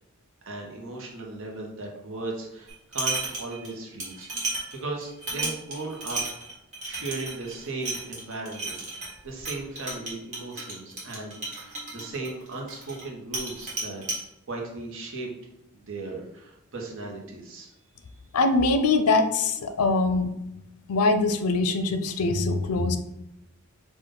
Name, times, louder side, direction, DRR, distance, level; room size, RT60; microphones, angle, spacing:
voice 1, 0.5-6.2 6.8-14.0 14.5-15.3 15.7-17.7, right 2 dB, 65° right, 0 dB, 1.0 m, -37 dB
sound 1, 2.7-3.7 4.0-13.1 13.3-14.2, right 2 dB, 35° right, 1.4 m, -34 dB
voice 2, 18.3-20.3 20.9-23.0, left 3 dB, 90° left, 9 dB, 0.5 m, -23 dB
5.1 x 2.5 x 3.8 m, 0.87 s
head